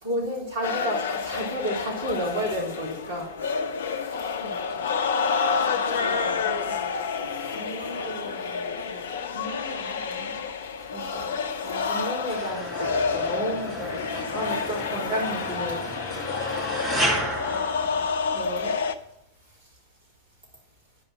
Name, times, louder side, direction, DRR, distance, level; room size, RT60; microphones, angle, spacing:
voice 1, 0.0-3.6 10.9-11.4 11.6-15.9 18.3-18.8, equal, 55° right, 3.9 m, -31 dB
sound 1, 0.6-19.0, left 5 dB, 60° left, 0.5 m, -29 dB
voice 2, 4.4-4.9 5.3-10.7 16.8-18.1, equal, 75° right, 2.0 m, -42 dB
sound 2, 12.3-18.6, right 1 dB, 20° right, 2.9 m, -33 dB
9.8 x 5.5 x 6.3 m
figure-of-eight pair, 90°, 0 cm